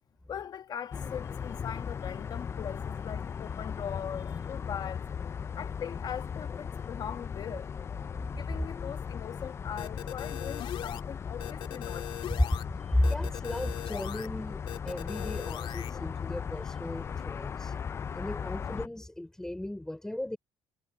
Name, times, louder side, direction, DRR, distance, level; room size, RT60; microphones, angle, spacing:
voice 1, 0.3-5.1 5.6-7.7 8.3-12.2, left 8 dB, 45° left, 1.3 m, -40 dB
sound 1, 0.9-18.9, left 7 dB, 25° left, 0.4 m, -37 dB
sound 2, 9.8-11.0 11.4-12.6 13.0-14.3 14.7-15.9, left 11 dB, 65° left, 2.1 m, -40 dB
voice 2, 12.7-17.7 18.1-20.4, left 1 dB, 5° left, 3.6 m, -34 dB
cardioid pair, 145°, 10 cm